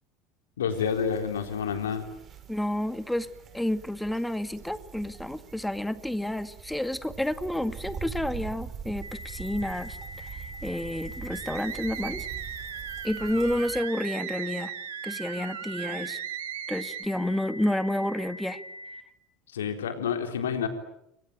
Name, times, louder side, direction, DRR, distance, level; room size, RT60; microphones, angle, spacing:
voice 1, 0.6-2.0 19.5-20.7, left 7 dB, 80° left, 7 dB, 3.9 m, -29 dB
sound 1, 0.7-13.8, right 8 dB, 40° right, 4.9 m, -43 dB
voice 2, 2.5-3.3 3.5-10.3 10.6-12.3 13.0-14.7 15.0-16.2 16.7-18.6, left 1 dB, 5° left, 11 dB, 2.1 m, -30 dB
sound 2, 9.0-19.0, left 1 dB, 90° right, 3.6 m, -43 dB
sound 3, 11.3-17.1, right 14 dB, 70° right, 2.3 m, -38 dB
28.5 x 23.5 x 9.0 m, 0.80 s
figure-of-eight pair, 75°, 0 cm